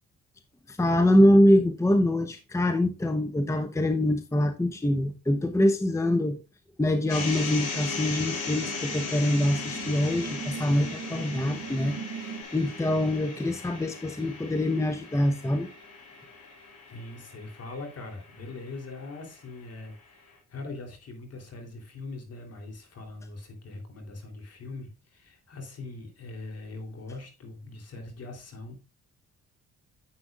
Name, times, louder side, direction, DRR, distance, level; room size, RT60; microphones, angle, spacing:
voice 1, 0.7-6.4 6.8-15.7, left 1 dB, 10° left, 0.8 m, -24 dB
sound 1, 7.0-12.4, right 6 dB, 80° right, 1.9 m, -41 dB
sound 2, 7.1-19.2, left 4 dB, 80° left, 3.4 m, -38 dB
voice 2, 16.9-28.8, left 2 dB, 55° left, 3.3 m, -41 dB
10.0 x 7.9 x 2.4 m
cardioid pair, 95°, 30 cm